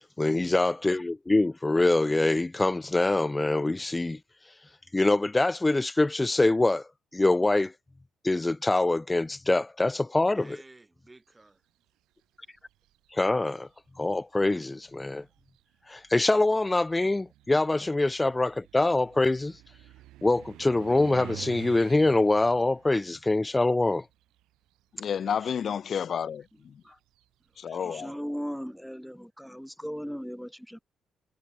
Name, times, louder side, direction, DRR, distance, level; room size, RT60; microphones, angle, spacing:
voice 1, 0.2-4.2 4.9-7.7 8.2-10.6 13.1-13.7 14.0-15.2 15.9-19.6 20.2-24.0, left 2 dB, 15° left, 0.4 m, -24 dB
voice 2, 10.3-11.6 27.4-28.7, right 2 dB, 15° right, 4.5 m, -53 dB
sound 1, 12.6-13.1 14.1-14.2 14.8-24.7 25.0-27.6, right 15 dB, 90° right, 6.8 m, -49 dB
voice 3, 25.0-26.7 27.6-28.1, left 8 dB, 55° left, 1.3 m, -31 dB
voice 4, 27.8-30.8, equal, ahead, 0.9 m, -37 dB
cardioid pair, 90°, 0 cm